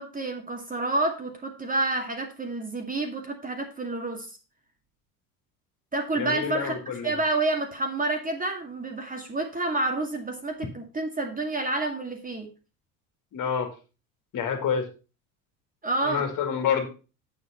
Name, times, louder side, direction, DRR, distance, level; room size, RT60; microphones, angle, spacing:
voice 1, 0.0-4.4 5.9-6.8 7.0-12.5 15.8-16.3, right 2 dB, 20° right, 3 dB, 2.0 m, -29 dB
voice 2, 6.2-7.1 13.3-13.7 14.3-14.8 16.0-16.9, left 7 dB, 45° left, 6 dB, 2.4 m, -27 dB
8.3 x 7.1 x 4.3 m, 0.33 s
hypercardioid pair, 70°, 44 cm